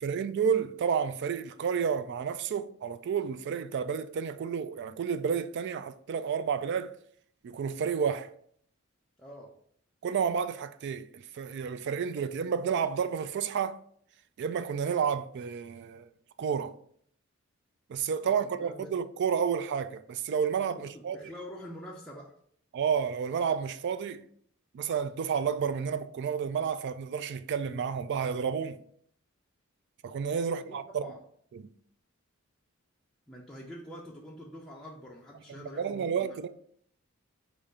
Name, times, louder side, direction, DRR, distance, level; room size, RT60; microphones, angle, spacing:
voice 1, 0.0-6.9 7.4-8.3 10.0-13.8 14.4-16.1 16.4-16.7 17.9-21.2 22.7-24.2 24.7-28.8 30.0-31.1 31.5-31.7 35.5-36.5, right 7 dB, 55° right, 0.3 m, -31 dB
voice 2, 9.2-9.6 18.6-18.9 20.7-22.4 30.5-31.2 33.3-36.4, left 1 dB, 5° left, 0.5 m, -46 dB
5.0 x 2.5 x 4.1 m
head